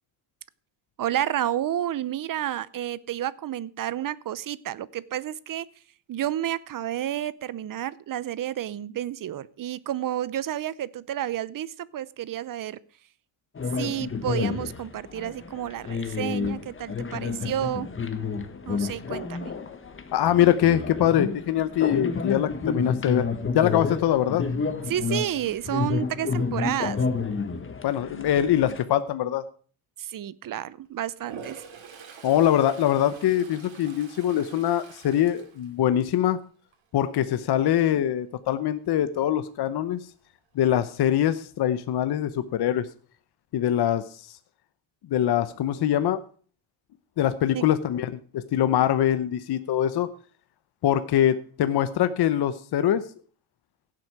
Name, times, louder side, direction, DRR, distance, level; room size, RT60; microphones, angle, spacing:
voice 1, 1.0-5.7 6.1-12.8 13.8-17.9 18.7-19.5 24.9-27.0 30.0-31.6 47.5-47.6, right 12 dB, 45° right, 19 dB, 0.7 m, -30 dB
sound 1, 13.5-28.8, left 5 dB, 25° left, 1.2 m, -30 dB
voice 2, 20.1-23.3 23.5-24.4 27.8-29.4 32.2-36.4 36.9-40.0 40.6-42.9 43.5-44.4 45.1-46.2 47.2-50.1 50.8-53.0, left 11 dB, 55° left, 11 dB, 0.8 m, -23 dB
Toilet flush, 31.1-36.3 36.7-37.1 41.6-41.7 41.9-42.7, right 6 dB, 70° right, 3.0 m, -46 dB
16.0 x 7.8 x 4.7 m, 0.42 s
cardioid pair, 140°, 47 cm